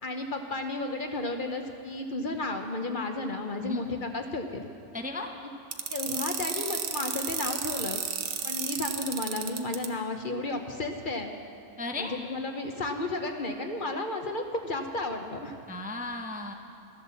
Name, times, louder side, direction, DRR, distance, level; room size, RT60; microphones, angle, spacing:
voice 1, 0.0-4.7 5.9-8.0 8.4-11.3 12.0-15.6, left 2 dB, 45° left, 4 dB, 1.0 m, -33 dB
voice 2, 4.9-5.3 11.8-12.2 15.7-16.5, left 2 dB, 10° right, 3 dB, 0.6 m, -35 dB
sound 1, 5.7-9.9, right 7 dB, 70° right, 1.2 m, -32 dB
14.0 x 11.5 x 7.0 m, 2.7 s
omnidirectional pair, 1.3 m